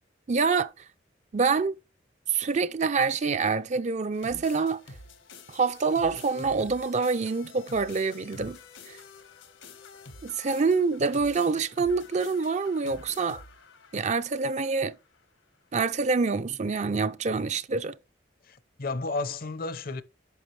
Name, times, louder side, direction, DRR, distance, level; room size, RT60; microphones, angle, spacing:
voice 1, 0.3-0.7 1.3-1.7 2.3-4.8 5.5-8.6 8.9-9.0 10.2-13.4 13.9-14.9 15.7-17.9, right 4 dB, 35° right, 0.5 m, -26 dB
sound 1, 4.1-15.2, left 3 dB, 85° left, 1.5 m, -49 dB
voice 2, 18.4-20.0, left 3 dB, 50° left, 0.6 m, -32 dB
9.2 x 6.0 x 3.2 m
head